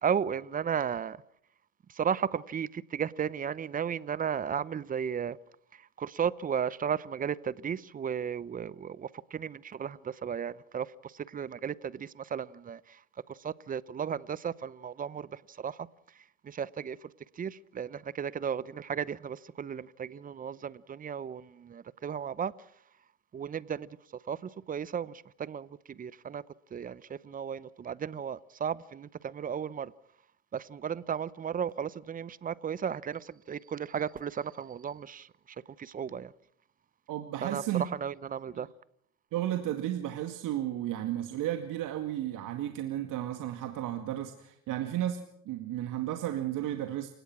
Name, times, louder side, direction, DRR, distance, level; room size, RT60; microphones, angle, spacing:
voice 1, 0.0-1.2 1.9-5.4 6.0-13.0 13.3-15.8 16.4-17.0 17.4-22.5 23.3-24.0 24.3-26.4 26.7-29.9 30.5-35.3 35.8-36.3 37.4-38.7, right 8 dB, 20° right, 0.7 m, -34 dB
voice 2, 37.1-37.8 38.6-38.7 39.3-47.1, right 12 dB, 50° right, 2.2 m, -33 dB
28.5 x 17.5 x 6.1 m
supercardioid pair, 110°, 42 cm